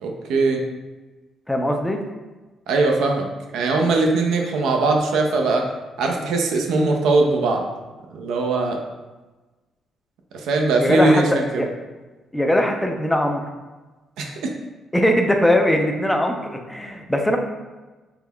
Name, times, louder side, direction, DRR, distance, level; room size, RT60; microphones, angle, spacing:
voice 1, 0.0-0.6 2.7-3.3 3.5-5.7 6.0-7.6 8.1-8.8 10.3-11.6 14.2-14.5, right 3 dB, 85° right, 1 dB, 0.4 m, -20 dB
voice 2, 1.5-2.0 10.8-11.2 11.6-11.7 12.3-13.4 14.9-16.4 16.7-17.4, left 1 dB, 5° left, 3 dB, 0.4 m, -20 dB
3.6 x 2.9 x 2.2 m, 1.2 s
cardioid pair, 90°, 0 cm